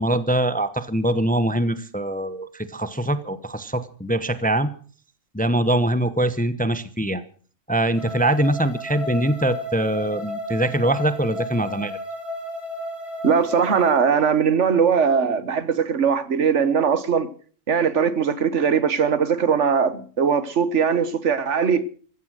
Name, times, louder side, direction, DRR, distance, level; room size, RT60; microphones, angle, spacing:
voice 1, 0.0-4.7 5.3-7.2 7.7-12.0, right 1 dB, 5° left, 0.8 m, -23 dB
sound 1, 7.9-13.9, left 1 dB, 25° right, 4.3 m, -33 dB
voice 2, 13.2-17.3 17.7-21.8, right 6 dB, 65° right, 1.4 m, -20 dB
15.5 x 13.5 x 6.5 m
omnidirectional pair, 1.4 m